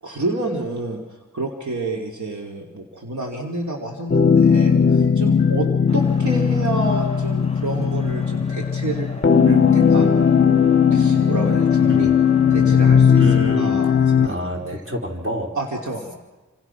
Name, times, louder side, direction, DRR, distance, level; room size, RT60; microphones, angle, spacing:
voice 1, 0.0-5.7 5.9-9.1 9.4-10.5 10.9-12.1 12.5-13.2 13.6-14.8 15.5-16.1, right 2 dB, 65° right, 0 dB, 3.3 m, -29 dB
sound 1, 4.1-14.3, left 7 dB, 40° left, 0.7 m, -17 dB
sound 2, 5.9-12.8, equal, 20° left, 1.1 m, -38 dB
voice 2, 11.9-12.2 13.1-13.8 14.2-15.5, right 1 dB, 40° right, 1 dB, 5.0 m, -27 dB
29.0 x 27.0 x 6.1 m, 1.2 s
wide cardioid pair, 85°, 31 cm